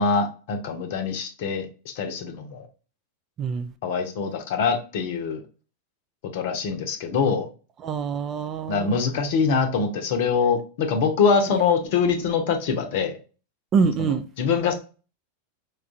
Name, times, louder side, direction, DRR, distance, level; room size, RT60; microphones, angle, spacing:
voice 1, 0.0-1.7 1.9-2.7 3.8-5.4 6.3-7.5 8.7-13.1 14.0-14.7, left 5 dB, 50° left, 0.8 m, -24 dB
voice 2, 3.4-3.7 7.8-9.0 13.7-14.2, right 5 dB, 30° right, 0.4 m, -25 dB
4.3 x 2.4 x 2.5 m
figure-of-eight pair, 90°, 0 cm